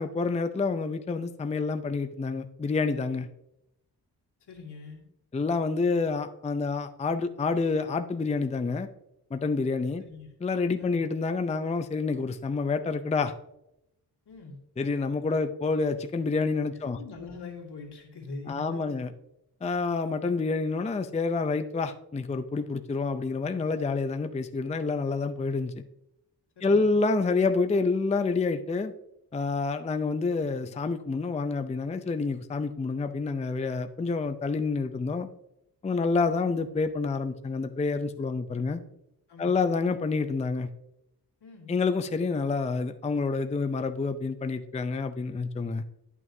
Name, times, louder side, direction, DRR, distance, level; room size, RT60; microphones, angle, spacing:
voice 1, 0.0-3.3 5.3-8.9 9.3-10.0 10.4-13.3 14.8-17.0 18.5-19.1 19.6-25.8 26.6-28.9 29.3-35.3 35.8-38.8 39.4-40.7 41.7-45.8, left 4 dB, 20° left, 9 dB, 0.4 m, -28 dB
voice 2, 4.4-5.0 10.0-10.3 10.8-10.9 14.3-14.6 16.8-18.9 26.6-27.0 39.3-39.8 41.4-41.8, left 4 dB, 75° left, -1 dB, 2.3 m, -43 dB
11.0 x 6.0 x 2.7 m, 0.82 s
cardioid pair, 80°, 40 cm